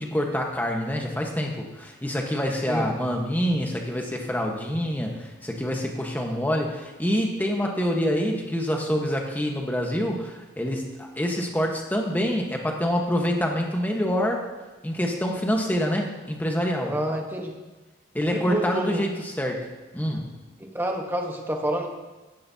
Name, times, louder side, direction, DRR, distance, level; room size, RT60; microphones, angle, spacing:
voice 1, 0.0-14.4 14.8-16.9 18.1-19.7 19.9-20.3, equal, 10° left, 1 dB, 1.2 m, -26 dB
voice 2, 16.9-17.5 18.3-19.0 20.7-21.9, right 1 dB, 10° right, 1 dB, 1.2 m, -28 dB
15.5 x 10.5 x 2.8 m, 1.2 s
head